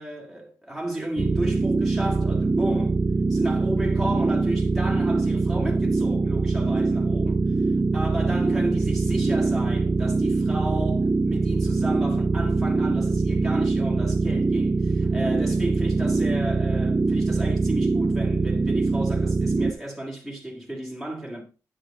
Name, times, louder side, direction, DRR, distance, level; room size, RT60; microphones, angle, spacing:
voice 1, 0.0-3.0 3.3-7.5 7.9-21.4, right 1 dB, ahead, 2.1 m, -33 dB
sound 1, 1.2-19.7, right 3 dB, 25° right, 0.4 m, -23 dB
9.2 x 6.3 x 3.7 m
wide cardioid pair, 105°, 7 cm